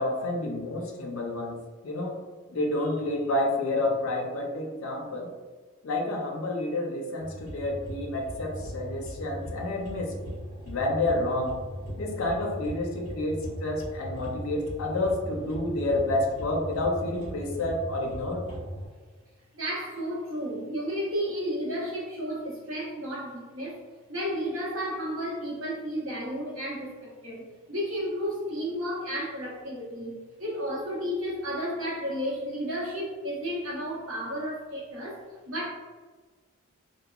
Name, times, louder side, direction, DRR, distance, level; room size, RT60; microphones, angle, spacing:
voice 1, 0.0-1.6 1.8-2.2 2.5-5.3 5.8-10.1 10.7-11.5 12.0-18.5, left 2 dB, 65° left, 1 dB, 0.4 m, -29 dB
sound 1, 7.2-18.9, equal, 30° right, 1.1 m, -39 dB
voice 2, 19.5-23.8 24.1-35.7, equal, 70° right, -4 dB, 0.8 m, -32 dB
2.9 x 2.1 x 2.2 m, 1.4 s
head